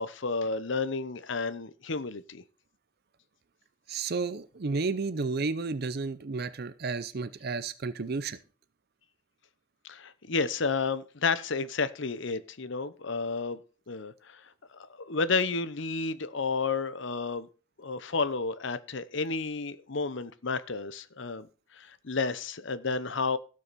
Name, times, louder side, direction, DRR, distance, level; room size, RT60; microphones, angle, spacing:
voice 1, 0.0-2.4 9.8-13.6 13.9-14.1 14.7-17.5 17.8-21.5 21.8-23.4, left 4 dB, 60° left, 0.8 m, -31 dB
voice 2, 3.9-8.4, right 4 dB, 50° right, 0.6 m, -32 dB
16.5 x 6.3 x 4.2 m
head